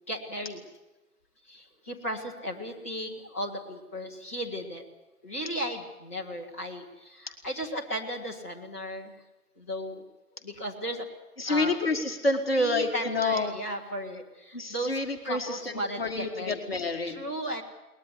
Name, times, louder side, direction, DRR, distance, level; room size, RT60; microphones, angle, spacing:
voice 1, 0.1-0.6 1.4-4.8 5.2-9.2 9.6-10.0 10.4-11.1 11.5-11.8 12.5-15.0 15.2-16.6 17.1-17.6, equal, 10° left, -4 dB, 1.1 m, -35 dB
voice 2, 11.4-13.5 14.5-15.6 16.0-17.3, left 2 dB, 40° left, 4 dB, 1.8 m, -28 dB
22.0 x 19.5 x 8.1 m, 1.1 s
figure-of-eight pair, 155°, 47 cm